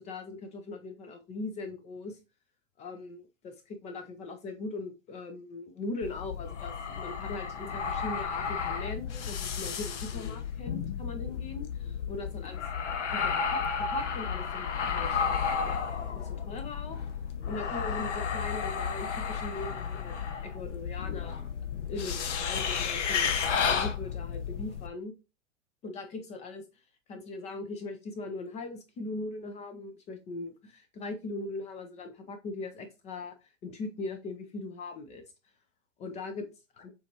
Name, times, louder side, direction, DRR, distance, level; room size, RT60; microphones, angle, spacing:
voice 1, 0.0-2.2 2.8-12.6 13.1-15.2 15.6-15.8 16.1-17.0 17.5-20.1 20.4-21.5 21.9-23.3 23.7-25.1 25.8-35.2 36.0-36.5 36.8-36.9, left 2 dB, 20° left, 7 dB, 0.5 m, -40 dB
sound 1, 6.0-24.9, left 6 dB, 65° left, 0.8 m, -32 dB
7.1 x 2.5 x 2.9 m, 0.28 s
figure-of-eight pair, 100°, 39 cm